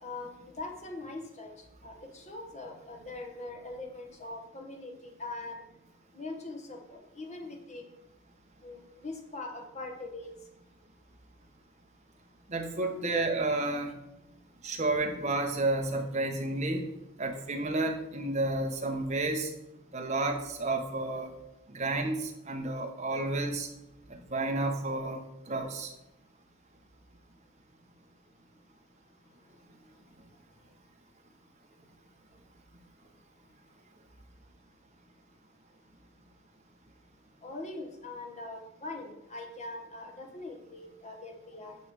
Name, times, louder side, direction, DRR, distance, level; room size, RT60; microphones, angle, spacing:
voice 1, 0.0-5.6 6.1-7.9 8.6-10.3 37.4-41.8, left 2 dB, 30° left, 2 dB, 1.2 m, -42 dB
voice 2, 12.5-13.9 14.6-16.9 17.2-19.5 19.9-21.3 21.7-23.7 24.3-25.2 25.5-25.9, right 2 dB, 30° right, 3 dB, 1.0 m, -31 dB
9.3 x 3.3 x 6.7 m, 0.89 s
head